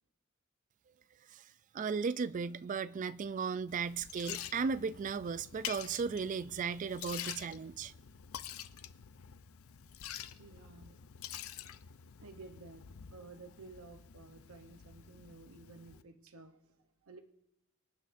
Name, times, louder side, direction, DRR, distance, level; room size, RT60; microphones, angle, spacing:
voice 1, 1.7-7.9, right 5 dB, 40° right, 0.3 m, -36 dB
Liquid, 3.7-16.0, left 10 dB, 80° left, 0.5 m, -47 dB
voice 2, 10.4-11.5 12.2-17.2, right 3 dB, 85° right, 0.8 m, -54 dB
25.0 x 9.2 x 2.6 m
head